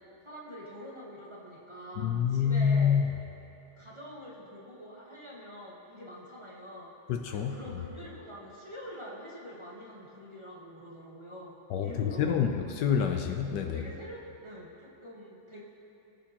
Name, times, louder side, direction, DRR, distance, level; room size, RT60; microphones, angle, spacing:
voice 1, 0.2-3.1 3.8-6.9 7.3-12.4 13.7-15.6, equal, 25° right, -6 dB, 0.7 m, -45 dB
voice 2, 2.0-3.1 7.1-7.6 11.7-13.8, left 7 dB, 75° left, 5 dB, 1.0 m, -27 dB
19.0 x 6.5 x 2.9 m, 3.0 s
omnidirectional pair, 2.3 m